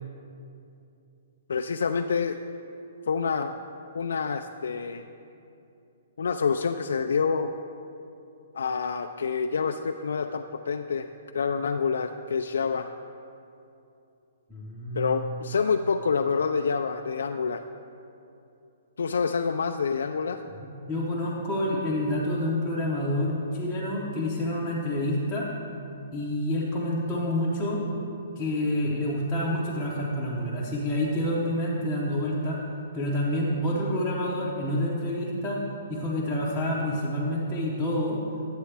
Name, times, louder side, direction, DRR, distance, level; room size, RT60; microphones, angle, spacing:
voice 1, 1.5-2.4 3.1-3.6 3.9-5.1 6.2-7.5 8.5-11.1 11.3-12.9 14.9-17.6 19.0-20.4, left 5 dB, 85° left, 6 dB, 0.3 m, -27 dB
voice 2, 14.5-15.4 20.4-20.5 20.8-25.5 26.1-27.8 28.4-32.6 32.9-35.6 35.9-38.2, left 1 dB, ahead, -10 dB, 0.7 m, -28 dB
11.5 x 8.1 x 3.3 m, 2.7 s
hypercardioid pair, 175°, 0 cm